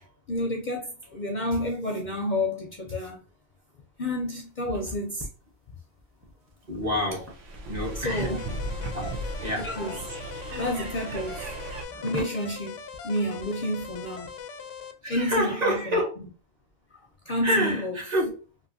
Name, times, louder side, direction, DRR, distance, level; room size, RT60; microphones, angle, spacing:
voice 1, 0.3-3.2 4.0-5.3 8.0-8.4 9.6-10.1 10.5-14.3 15.1-16.0 17.3-18.0, left 1 dB, 50° left, 0.6 m, -30 dB
sound 1, 4.0-5.3 6.0-8.8 9.4-14.4, equal, 15° right, 0.7 m, -44 dB
voice 2, 6.6-7.3 7.7-8.3 8.9-9.1 9.4-9.7 15.0-16.1 17.4-18.3, equal, 35° right, 1.2 m, -27 dB
assorted birds, 6.9-11.8, right 2 dB, 90° right, 1.1 m, -36 dB
sound 2, 8.1-14.9, left 7 dB, 85° left, 0.9 m, -41 dB
3.1 x 2.8 x 2.6 m
omnidirectional pair, 1.2 m